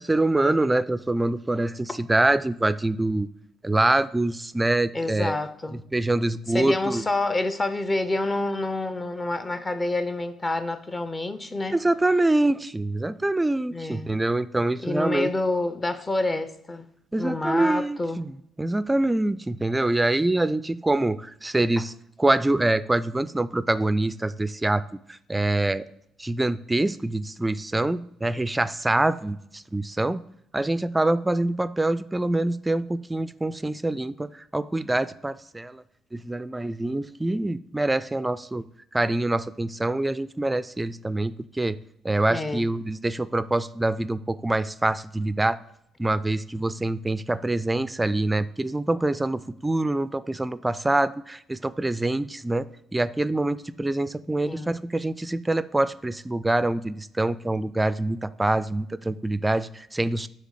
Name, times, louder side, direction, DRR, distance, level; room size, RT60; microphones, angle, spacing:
voice 1, 0.0-3.3 3.6-5.4 5.7-7.0 11.7-15.3 17.1-21.9 22.2-24.8 25.1-25.8 26.2-30.2 30.5-35.8 36.1-38.6 38.9-41.8 42.0-45.6 46.0-60.3, right 2 dB, 15° right, 0.3 m, -25 dB
voice 2, 4.9-5.8 6.5-11.8 13.7-14.1 14.8-16.9 17.2-18.2 42.3-42.6 54.4-54.7, left 2 dB, 25° left, 0.6 m, -28 dB
7.4 x 3.3 x 6.3 m
figure-of-eight pair, 50°, 0 cm